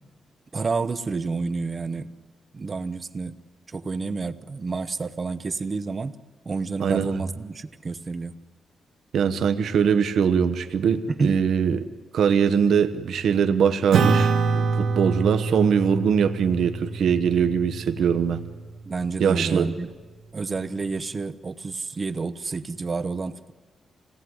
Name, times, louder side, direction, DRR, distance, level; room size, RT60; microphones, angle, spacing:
voice 1, 0.5-2.1 2.5-3.4 3.7-6.1 6.4-8.3 11.1-11.4 18.8-19.9 20.3-23.5, right 4 dB, 25° right, 13 dB, 0.8 m, -29 dB
voice 2, 6.8-7.2 9.1-11.8 12.1-18.4 19.2-19.7, right 7 dB, 70° right, 8 dB, 1.2 m, -22 dB
Acoustic guitar / Strum, 13.9-18.7, right 4 dB, 85° right, 2.2 m, -25 dB
27.0 x 18.5 x 9.6 m, 1.4 s
wide cardioid pair, 175°, 0 cm